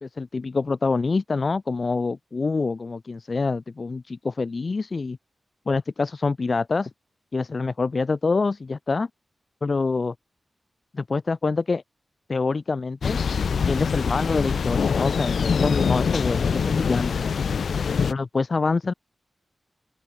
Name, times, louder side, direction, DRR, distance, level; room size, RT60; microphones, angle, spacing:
voice 1, 0.0-5.2 5.7-6.9 7.3-9.1 9.6-10.1 10.9-11.8 12.3-13.2 13.7-17.2 18.1-18.9, left 4 dB, 40° left, 0.8 m, -26 dB
Thunder, 13.0-18.1, left 6 dB, 75° left, 0.3 m, -24 dB
open air
wide cardioid pair, 135°, 0 cm